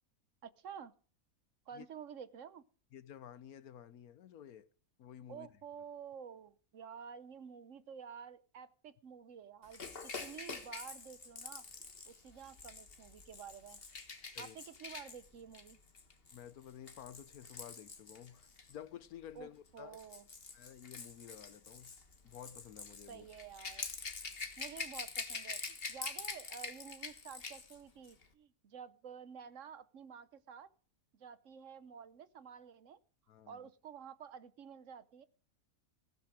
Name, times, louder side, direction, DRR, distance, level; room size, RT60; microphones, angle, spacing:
voice 1, 0.4-0.9 1.7-2.6 5.3-11.7 12.1-13.8 14.4-15.8 19.4-20.3 23.1-23.9 24.6-30.7 31.1-33.0 33.5-35.3, right 7 dB, 65° right, 1.1 m, -51 dB
voice 2, 2.9-4.7 5.0-5.5 14.3-14.6 16.3-20.0 20.5-21.9 22.2-23.2 33.3-33.6, left 10 dB, 85° left, 1.4 m, -52 dB
Rattle / Rattle (instrument), 9.7-18.7 19.7-27.8 28.0-28.2, left 4 dB, 40° left, 1.7 m, -46 dB
16.0 x 12.0 x 5.0 m
omnidirectional pair, 1.5 m